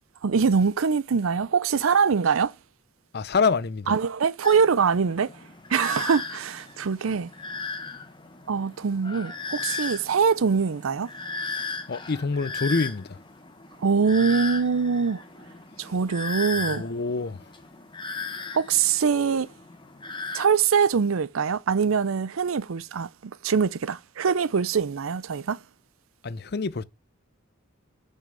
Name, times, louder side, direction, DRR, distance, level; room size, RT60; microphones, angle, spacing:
voice 1, 0.2-2.5 3.9-5.3 5.7-7.3 8.5-11.1 13.8-15.2 15.8-16.9 18.5-19.5 20.3-25.6, right 6 dB, 85° right, 0.5 m, -23 dB
voice 2, 3.1-3.9 11.9-13.2 16.7-17.4 26.2-26.8, left 4 dB, 50° left, 0.6 m, -26 dB
sound 1, 4.4-20.5, left 3 dB, 25° left, 1.2 m, -36 dB
7.0 x 5.5 x 6.8 m
head